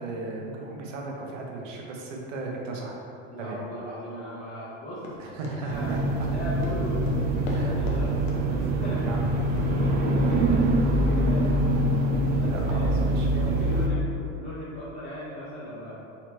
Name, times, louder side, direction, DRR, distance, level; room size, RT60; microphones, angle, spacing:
voice 1, 0.0-3.0 3.4-3.6 5.2-6.3 7.5-7.8 9.0-9.3 12.5-13.3, right 2 dB, 90° right, -1 dB, 1.0 m, -36 dB
voice 2, 3.3-5.0 5.5-9.1 9.7-11.9 12.3-12.9 13.3-16.0, equal, 20° left, -12 dB, 1.0 m, -38 dB
Run, 5.0-8.0 8.3-8.4 8.8-9.1 9.6-9.7 10.3-10.4, left 3 dB, 80° left, 1.0 m, -39 dB
sound 1, 5.7-13.9, right 1 dB, 30° right, 0.3 m, -24 dB
4.5 x 3.9 x 3.0 m, 2.7 s
supercardioid pair, 135°, 37 cm